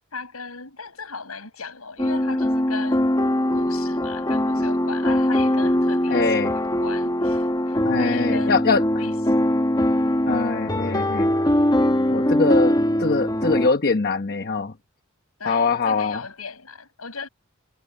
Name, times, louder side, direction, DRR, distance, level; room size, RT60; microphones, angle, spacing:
voice 1, 0.1-3.1 3.5-8.6 9.0-9.2 15.4-17.3, left 4 dB, 90° left, 7.4 m, -37 dB
sound 1, 2.0-13.7, left 1 dB, 20° left, 1.5 m, -22 dB
voice 2, 6.1-6.5 7.8-8.8 10.3-11.4 12.1-14.7 15.4-16.2, left 4 dB, 45° left, 1.0 m, -23 dB
head